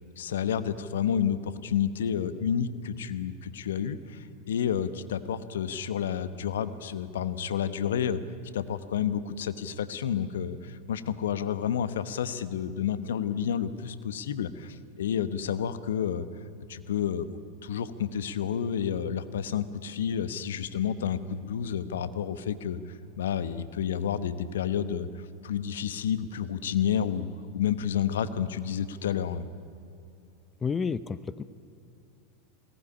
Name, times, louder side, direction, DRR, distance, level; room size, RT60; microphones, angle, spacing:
voice 1, 0.2-8.2 8.5-16.3 16.7-27.3 27.5-29.5, left 8 dB, 70° left, 13 dB, 1.1 m, -30 dB
voice 2, 30.6-31.4, left 5 dB, 25° left, 16 dB, 0.7 m, -30 dB
21.0 x 19.0 x 10.0 m, 2.6 s
hypercardioid pair, 85°, 0 cm